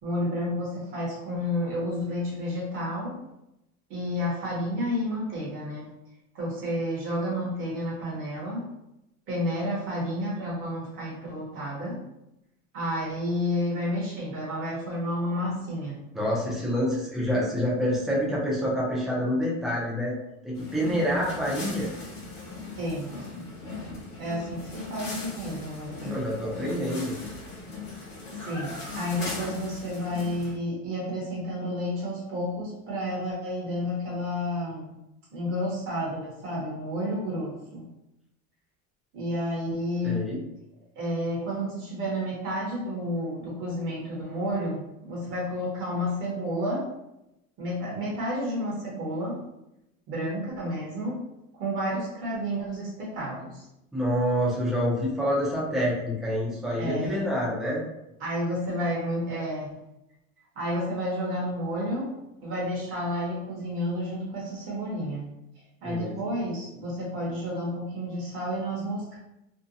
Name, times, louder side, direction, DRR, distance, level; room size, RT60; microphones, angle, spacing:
voice 1, 0.0-3.1 3.9-5.9 6.3-8.6 9.3-12.0 12.7-16.0 22.7-23.5 24.2-26.2 28.4-34.9 35.3-37.9 39.1-40.2 41.0-44.8 45.1-46.8 47.6-49.4 50.1-51.2 51.5-53.6 56.8-57.2 58.2-59.7 60.6-62.1 62.4-65.3 65.8-69.2, equal, 40° right, -5 dB, 0.8 m, -31 dB
voice 2, 16.1-20.2 20.4-21.9 26.0-27.1 40.0-40.4 53.9-57.8 65.8-66.1, equal, ahead, -6 dB, 0.5 m, -27 dB
sound 1, 20.5-30.5, left 3 dB, 75° left, 1.1 m, -39 dB
2.6 x 2.1 x 2.5 m, 0.88 s
cardioid pair, 165°, 30 cm